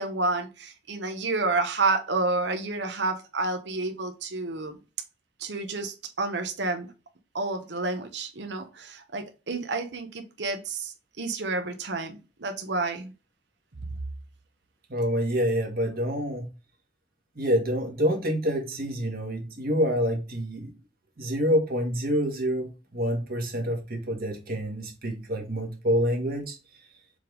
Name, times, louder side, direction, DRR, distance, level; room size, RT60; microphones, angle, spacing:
voice 1, 0.0-4.8 5.4-6.9 7.3-13.1, right 3 dB, 75° right, 1.0 m, -30 dB
voice 2, 14.9-16.5 17.4-20.7 21.2-22.7 22.9-26.6, equal, 55° right, 1.8 m, -27 dB
7.4 x 3.5 x 3.8 m
head